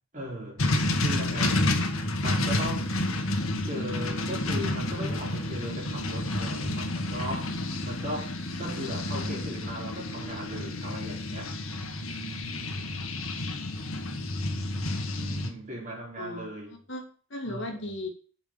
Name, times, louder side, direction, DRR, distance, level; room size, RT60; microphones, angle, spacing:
voice 1, 0.1-0.6 1.0-1.7 2.2-3.0 3.7-7.5 7.8-11.6 15.1-16.8 17.4-17.7, equal, 35° right, 3.8 m, -37 dB
sound 1, 0.6-15.5, left 2 dB, 80° left, 1.9 m, -30 dB
voice 2, 8.6-9.4 16.2-18.1, left 1 dB, 60° left, 2.4 m, -38 dB
9.2 x 6.1 x 7.1 m
head